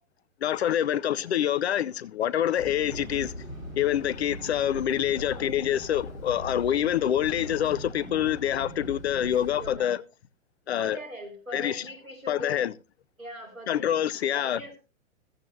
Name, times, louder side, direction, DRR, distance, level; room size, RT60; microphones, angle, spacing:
voice 1, 0.4-3.3 3.8-10.0 10.7-11.0 11.5-11.8 12.3-12.7 13.7-14.6, left 10 dB, 55° left, 0.7 m, -26 dB
sound 1, 2.6-9.8, equal, 85° left, 3.0 m, -40 dB
voice 2, 9.6-9.9 10.8-12.7 13.2-14.0 14.2-14.8, equal, 90° right, 5.2 m, -41 dB
14.5 x 14.5 x 2.7 m
figure-of-eight pair, 115°, 40 cm